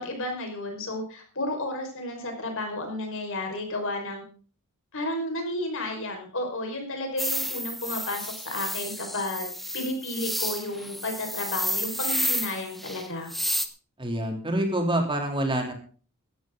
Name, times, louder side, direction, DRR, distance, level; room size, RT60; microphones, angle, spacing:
voice 1, 0.0-4.2 4.9-13.3, left 1 dB, 65° left, 3 dB, 5.4 m, -32 dB
sound 1, 7.2-13.7, equal, ahead, 1.1 m, -31 dB
voice 2, 14.0-15.7, right 1 dB, 25° right, 3 dB, 3.4 m, -26 dB
15.5 x 13.0 x 4.0 m, 0.39 s
head